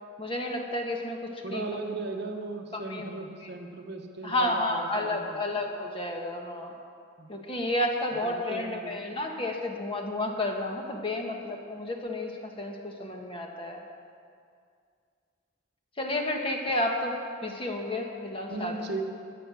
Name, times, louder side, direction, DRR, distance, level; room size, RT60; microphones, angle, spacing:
voice 1, 0.2-1.6 2.7-3.1 4.2-6.7 7.3-13.8 16.0-18.7, left 1 dB, 30° left, 2 dB, 1.3 m, -31 dB
voice 2, 1.4-5.6 7.2-7.3 8.1-8.9 18.5-19.0, right 2 dB, 60° right, 3 dB, 1.1 m, -37 dB
14.0 x 8.6 x 6.3 m, 2.3 s
head